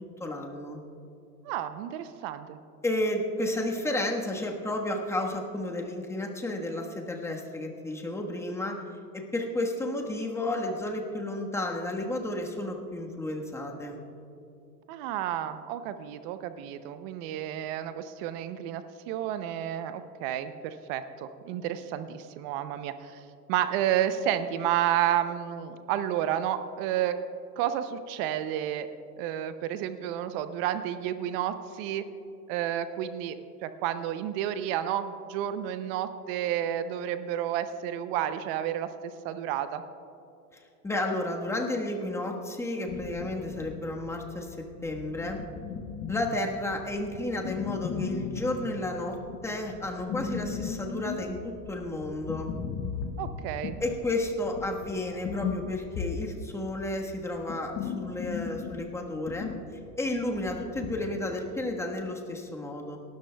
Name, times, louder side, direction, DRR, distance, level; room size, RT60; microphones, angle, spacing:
voice 1, 0.2-0.8 2.8-8.8 9.1-14.0 40.8-45.4 46.1-49.2 49.4-52.5 53.8-59.5 60.0-63.0, left 1 dB, 5° left, 1 dB, 1.3 m, -32 dB
voice 2, 1.4-2.6 14.9-23.2 23.5-27.2 27.6-28.9 29.2-32.1 32.5-39.8 53.2-53.8, right 11 dB, 35° right, 11 dB, 0.6 m, -31 dB
sound 1, 42.9-61.1, left 6 dB, 30° left, 1.0 m, -37 dB
28.0 x 13.0 x 2.3 m, 2.6 s
hypercardioid pair, 125°, 49 cm